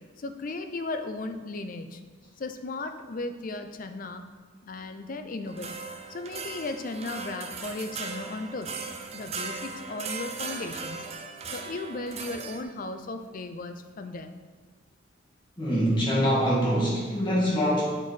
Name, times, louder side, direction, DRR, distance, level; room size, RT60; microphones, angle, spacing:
voice 1, 0.2-2.0 2.4-4.3 4.6-5.7 6.1-8.7 9.1-11.0 11.4-14.3, left 2 dB, 45° left, 8 dB, 0.5 m, -36 dB
sound 1, 5.5-12.6, right 4 dB, 35° right, 0.5 m, -38 dB
voice 2, 15.6-18.0, equal, 25° left, -5 dB, 1.7 m, -24 dB
7.5 x 4.9 x 4.1 m, 1.4 s
head